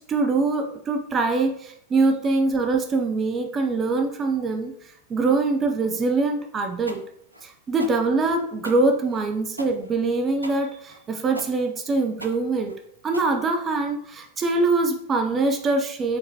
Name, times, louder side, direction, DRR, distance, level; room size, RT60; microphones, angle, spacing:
voice 1, 0.1-4.7 5.1-7.0 7.4-12.7 13.0-16.2, right 3 dB, 25° right, 4 dB, 0.5 m, -23 dB
sound 1, 6.9-13.9, equal, 90° right, 0.5 m, -41 dB
5.3 x 3.6 x 2.8 m, 0.71 s
figure-of-eight pair, 90°, 0 cm